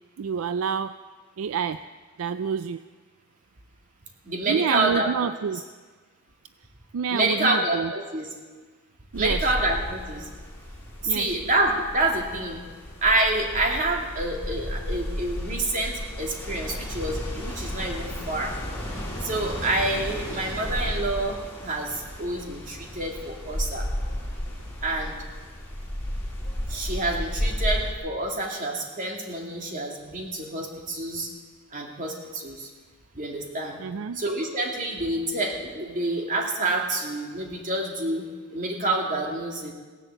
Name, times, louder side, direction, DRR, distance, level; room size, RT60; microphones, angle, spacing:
voice 1, 0.2-0.9 1.4-1.8 2.2-2.8 4.5-5.6 6.9-7.9 9.1-9.5 11.1-11.4 33.8-34.2, right 6 dB, 70° right, 12 dB, 0.4 m, -28 dB
voice 2, 4.2-5.3 7.1-8.3 9.2-10.3 11.0-12.6 13.0-18.5 19.2-23.9 24.8-25.2 26.7-31.3 31.7-32.7 33.1-33.8 34.1-39.7, right 2 dB, 40° right, 0 dB, 2.5 m, -27 dB
sound 1, 9.1-27.9, equal, 10° left, 3.7 m, -33 dB
17.0 x 10.5 x 7.9 m, 1.4 s
head